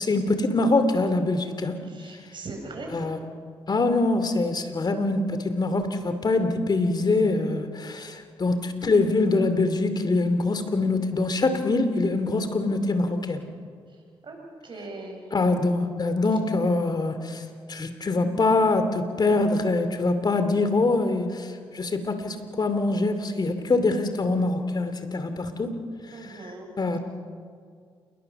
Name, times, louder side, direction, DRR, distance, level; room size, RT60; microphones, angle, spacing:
voice 1, 0.0-1.8 2.9-3.2 3.7-13.4 15.3-17.4 17.7-25.7 26.3-26.4 26.8-27.0, left 3 dB, 45° left, 9 dB, 2.7 m, -24 dB
voice 2, 2.0-2.9 14.3-14.4 14.6-15.2 26.1-26.7, right 3 dB, 50° right, 2 dB, 7.9 m, -39 dB
28.5 x 21.0 x 7.0 m, 2.1 s
cardioid pair, 65°, 10 cm